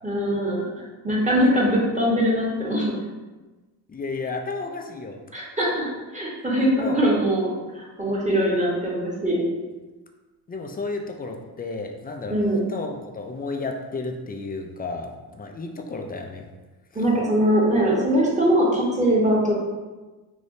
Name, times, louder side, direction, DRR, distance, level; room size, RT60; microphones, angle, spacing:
voice 1, 0.0-2.9 5.3-5.9 6.1-9.4 12.3-12.6 16.9-19.5, equal, 15° right, -5 dB, 1.1 m, -22 dB
voice 2, 3.9-5.2 6.7-7.0 10.5-12.4 12.7-16.5 16.9-17.0, left 3 dB, 20° left, 3 dB, 0.4 m, -32 dB
3.4 x 2.7 x 2.6 m, 1.2 s
supercardioid pair, 65°, 46 cm